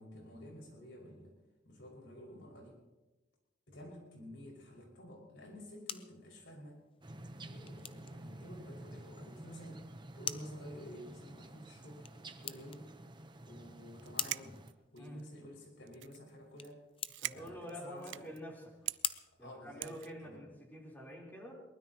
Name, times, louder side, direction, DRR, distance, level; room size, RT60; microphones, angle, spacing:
voice 1, 0.0-1.3 1.6-2.8 3.7-6.8 7.5-9.8 10.1-12.1 12.4-12.9 13.5-14.6 14.9-16.8 17.3-18.3 19.4-19.9 20.2-20.4, equal, 75° left, -1 dB, 5.8 m, -51 dB
sound 1, 5.4-20.4, left 8 dB, 30° left, 0.6 m, -47 dB
sound 2, 7.0-14.7, right 1 dB, 25° right, 0.9 m, -51 dB
sound 3, 14.0-15.3 15.9-16.3 16.6-16.7 17.0-18.4 18.9-19.0 19.8-20.1, right 15 dB, 75° right, 0.4 m, -42 dB
voice 2, 17.2-18.7 19.4-21.6, equal, 10° left, -2 dB, 3.9 m, -47 dB
22.5 x 20.0 x 3.0 m, 1.1 s
head